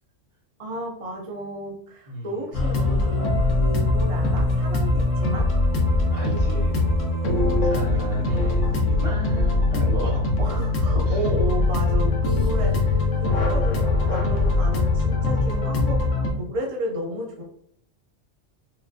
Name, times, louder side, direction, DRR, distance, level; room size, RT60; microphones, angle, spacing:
voice 1, 0.6-5.5 8.3-8.9 10.4-16.0 16.3-17.4, right 1 dB, 55° right, 0 dB, 0.3 m, -33 dB
sound 1, 2.5-16.3, left 2 dB, 85° left, 1.1 m, -22 dB
voice 2, 6.1-6.9 7.6-10.3 11.1-11.2 12.5-12.7, right 1 dB, 30° right, -5 dB, 1.2 m, -34 dB
4.7 x 2.4 x 2.6 m, 0.67 s
omnidirectional pair, 1.3 m